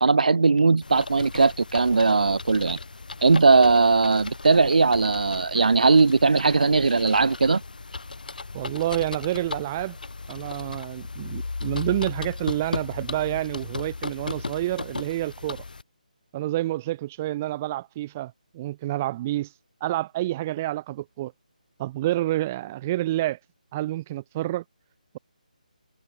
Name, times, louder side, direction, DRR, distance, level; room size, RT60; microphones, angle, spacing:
voice 1, 0.0-2.8 3.2-7.6, right 4 dB, 65° right, 2.0 m, -19 dB
sound 1, 0.8-15.8, left 3 dB, 75° left, 3.4 m, -36 dB
voice 2, 8.5-10.0 10.3-15.6 16.3-19.5 19.8-21.3 21.8-23.4 23.7-24.6, right 15 dB, 15° right, 0.6 m, -28 dB
hypercardioid pair, 175°, 5 cm